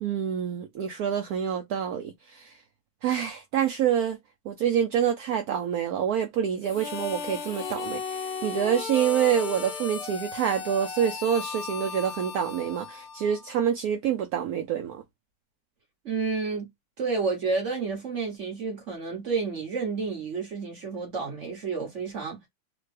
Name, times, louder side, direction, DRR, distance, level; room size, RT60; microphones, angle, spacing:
voice 1, 0.0-2.6 3.0-4.2 4.5-15.0, right 9 dB, 75° right, 0.8 m, -27 dB
Harmonica, 6.6-13.6, left 5 dB, 65° left, 1.0 m, -36 dB
voice 2, 16.0-16.7 17.0-22.4, right 4 dB, 45° right, 1.2 m, -30 dB
3.3 x 2.1 x 3.2 m
omnidirectional pair, 2.1 m